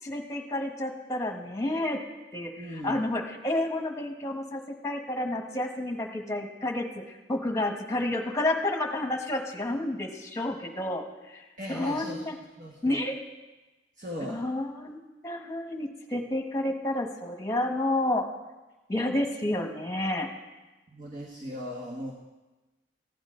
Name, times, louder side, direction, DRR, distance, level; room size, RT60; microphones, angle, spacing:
voice 1, 0.0-2.0 2.3-6.8 7.3-12.3 12.8-13.2 14.2-18.3 18.9-20.3, left 1 dB, 15° left, 2 dB, 1.3 m, -30 dB
voice 2, 2.6-3.0 11.6-12.2 12.6-13.0 14.0-14.4 20.9-22.1, equal, 45° right, -1 dB, 1.3 m, -38 dB
15.5 x 10.0 x 3.8 m, 1.1 s
head